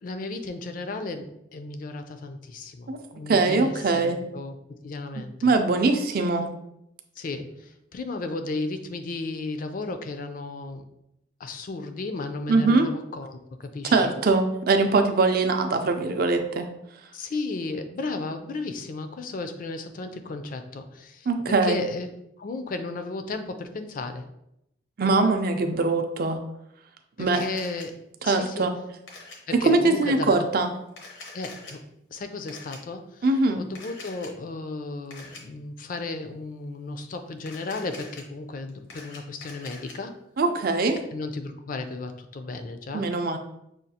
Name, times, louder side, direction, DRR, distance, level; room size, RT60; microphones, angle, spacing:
voice 1, 0.0-5.5 7.2-10.8 11.4-14.1 17.1-22.1 22.4-24.2 27.2-27.9 28.2-28.7 29.5-30.5 31.3-31.8 32.1-33.3 33.6-40.1 41.1-43.1, left 3 dB, 45° left, 8 dB, 0.4 m, -34 dB
voice 2, 3.3-4.2 5.4-6.5 12.5-12.9 13.9-16.7 21.3-21.9 25.0-26.4 27.2-27.4 28.3-28.7 29.6-30.7 33.2-33.6 40.4-41.0 42.9-43.4, right 3 dB, 50° right, 6 dB, 0.4 m, -22 dB
Camera, 27.3-27.9 29.1-29.4 30.9-31.7 32.5-32.8 33.7-34.3 35.1-35.4 37.4-38.2 38.7-39.9, left 3 dB, 85° left, 0.9 m, -44 dB
6.3 x 2.3 x 2.8 m, 0.80 s
head